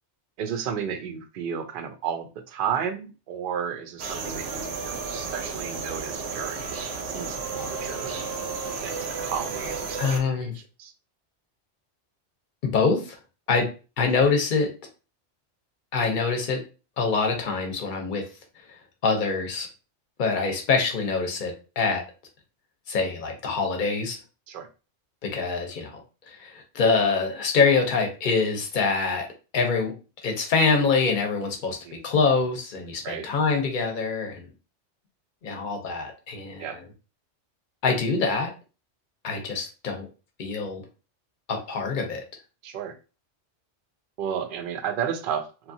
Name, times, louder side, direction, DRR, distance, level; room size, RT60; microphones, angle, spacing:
voice 1, 0.4-6.7 7.1-8.5 8.8-10.9 24.5-24.7 31.7-32.0 33.0-33.3 36.6-36.8 42.6-43.0 44.2-45.7, right 8 dB, 60° right, 8 dB, 0.6 m, -33 dB
sound 1, 4.0-10.2, right 4 dB, 85° right, 0.9 m, -32 dB
voice 2, 10.0-10.5 12.7-13.2 13.5-13.7 14.0-14.7 15.9-16.6 17.0-18.2 19.0-19.7 20.2-22.0 22.9-24.2 25.2-26.0 26.3-29.3 29.5-29.9 30.2-34.5 35.4-36.7 37.8-38.5 39.2-40.1 40.4-40.8 41.5-42.2, left 4 dB, 50° left, 3 dB, 0.7 m, -25 dB
2.8 x 2.3 x 2.6 m, 0.33 s
omnidirectional pair, 1.2 m